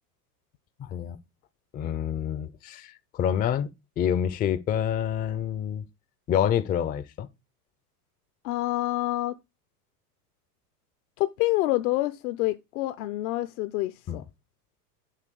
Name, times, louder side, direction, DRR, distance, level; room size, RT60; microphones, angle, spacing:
voice 1, 0.8-1.2 1.7-3.7 4.0-5.8 6.3-7.3 14.1-14.2, left 9 dB, 20° left, 0.4 m, -27 dB
voice 2, 8.4-9.4 11.2-14.2, left 17 dB, 65° left, 0.7 m, -27 dB
7.5 x 4.2 x 6.7 m
supercardioid pair, 125°, 47 cm